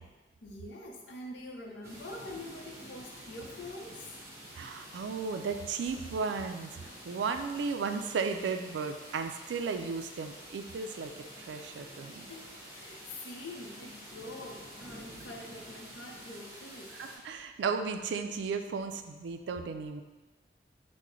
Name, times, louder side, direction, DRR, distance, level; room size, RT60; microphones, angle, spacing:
voice 1, 0.4-4.1 12.3-16.9, left 1 dB, 85° left, 0 dB, 0.7 m, -45 dB
sound 1, 1.8-17.2, equal, 15° right, 0.8 m, -49 dB
voice 2, 4.5-6.8 7.0-12.3 17.0-20.0, right 5 dB, 85° right, 7 dB, 0.3 m, -35 dB
5.9 x 2.1 x 3.1 m, 1.2 s
head